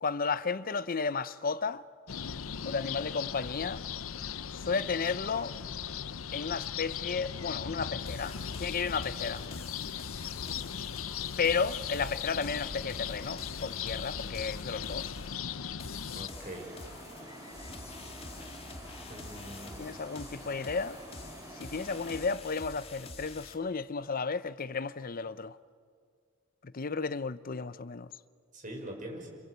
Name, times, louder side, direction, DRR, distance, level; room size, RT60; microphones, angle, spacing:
voice 1, 0.0-1.8 2.6-3.8 4.5-5.6 6.3-9.4 11.4-15.1 19.8-21.0 21.5-25.6 26.6-28.1, left 5 dB, 45° left, 0.7 m, -33 dB
sound 1, 2.1-16.3, left 8 dB, 90° left, 0.7 m, -38 dB
sound 2, 8.1-23.5, left 3 dB, 30° left, 1.8 m, -47 dB
voice 2, 16.2-16.7 19.1-19.8 28.5-29.3, right 1 dB, 40° right, 6.0 m, -43 dB
sound 3, 16.3-22.3, right 1 dB, 20° right, 6.8 m, -48 dB
27.0 x 26.0 x 8.2 m
head